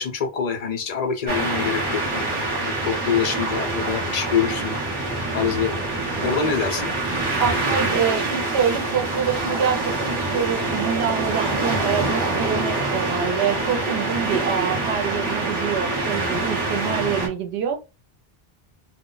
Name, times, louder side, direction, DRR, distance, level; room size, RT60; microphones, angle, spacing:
voice 1, 0.0-4.8 5.3-5.8 6.2-6.9, left 6 dB, 50° left, 0.5 m, -25 dB
sound 1, 1.3-17.3, right 2 dB, 25° right, 0.7 m, -25 dB
voice 2, 7.4-17.8, right 7 dB, 90° right, 0.9 m, -26 dB
2.1 x 2.1 x 3.8 m
omnidirectional pair, 1.0 m